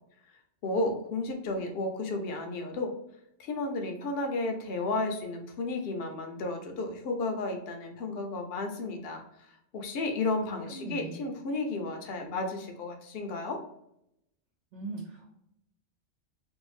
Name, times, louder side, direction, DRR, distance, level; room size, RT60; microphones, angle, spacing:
voice 1, 0.3-2.9 3.4-13.6, left 2 dB, 65° left, 3 dB, 0.7 m, -33 dB
voice 2, 10.5-11.2 14.7-15.3, right 3 dB, 75° right, -2 dB, 1.0 m, -40 dB
2.7 x 2.1 x 3.1 m, 0.80 s
omnidirectional pair, 1.2 m